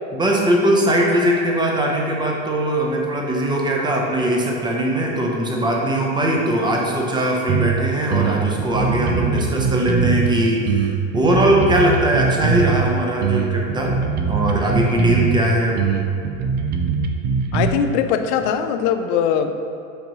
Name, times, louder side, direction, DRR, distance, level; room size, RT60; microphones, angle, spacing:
voice 1, 0.1-14.0 14.3-15.8, right 1 dB, 10° right, -1 dB, 0.8 m, -20 dB
sound 1, 7.5-7.8 8.1-10.3 10.7-12.9 13.2-15.4 15.8-17.7, right 6 dB, 25° right, 0.3 m, -21 dB
voice 2, 17.5-19.5, left 8 dB, 55° left, 7 dB, 0.6 m, -20 dB
7.9 x 5.2 x 3.0 m, 2.8 s
supercardioid pair, 135°, 40 cm